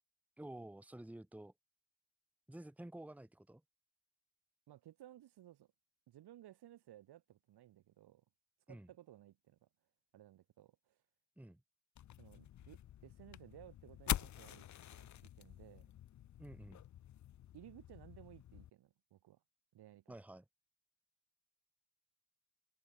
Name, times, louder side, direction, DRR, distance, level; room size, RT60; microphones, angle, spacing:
voice 1, 0.4-1.5 2.5-3.6 8.7-8.9 11.4-11.6 16.4-16.8 20.1-20.4, right 1 dB, 5° right, 1.6 m, -51 dB
voice 2, 4.7-5.7 6.1-8.2 8.7-9.7 10.1-11.0 12.1-15.9 17.5-19.4 19.7-20.2, right 13 dB, 80° right, 2.0 m, -59 dB
sound 1, 11.9-18.7, left 12 dB, 45° left, 0.6 m, -46 dB
open air
cardioid pair, 140°, 39 cm